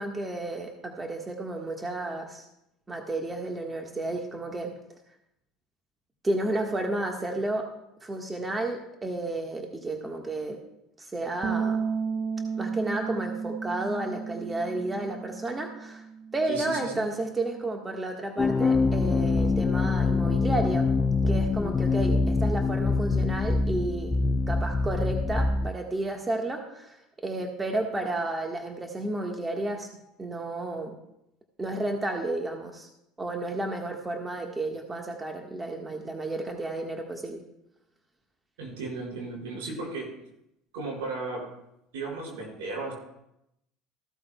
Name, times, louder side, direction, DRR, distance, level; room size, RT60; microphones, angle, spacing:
voice 1, 0.0-2.4 2.9-4.7 6.2-7.7 8.0-10.6 11.0-11.8 12.6-16.0 16.3-20.9 21.3-24.1 24.5-29.9 30.2-30.9 31.6-32.9 33.2-37.4, right 2 dB, 20° right, 2 dB, 1.5 m, -32 dB
sound 1, 11.4-17.7, right 6 dB, 40° right, 0.8 m, -34 dB
voice 2, 16.5-17.0 38.6-40.1 40.7-41.4 41.9-42.9, right 3 dB, 75° right, -3 dB, 5.2 m, -35 dB
sound 2, 18.4-25.7, left 3 dB, 20° left, 0.6 m, -24 dB
14.5 x 13.0 x 2.3 m, 0.82 s
hypercardioid pair, 75°, 0 cm